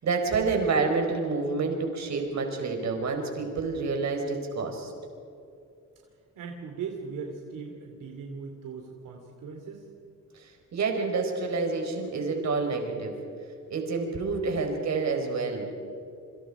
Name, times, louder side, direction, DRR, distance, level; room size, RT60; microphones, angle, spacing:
voice 1, 0.0-4.9 10.3-13.1 13.7-15.7, right 4 dB, 60° right, 3 dB, 4.8 m, -28 dB
voice 2, 6.4-9.9, right 5 dB, 90° right, 2 dB, 2.9 m, -39 dB
28.0 x 25.5 x 4.9 m, 2.6 s
cardioid pair, 130°, 31 cm